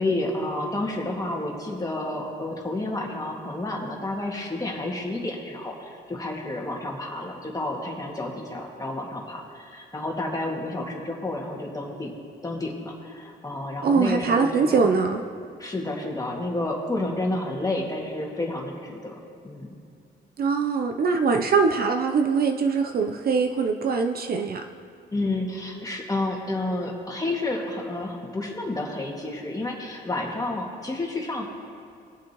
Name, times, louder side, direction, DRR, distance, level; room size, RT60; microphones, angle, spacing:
voice 1, 0.0-12.2 12.4-14.9 15.6-19.2 19.4-19.7 25.1-31.5, left 2 dB, 20° left, -1 dB, 2.0 m, -30 dB
voice 2, 13.8-15.2 20.4-24.7, right 5 dB, 50° right, 5 dB, 0.6 m, -22 dB
19.5 x 7.5 x 3.0 m, 2.3 s
cardioid pair, 90°, 20 cm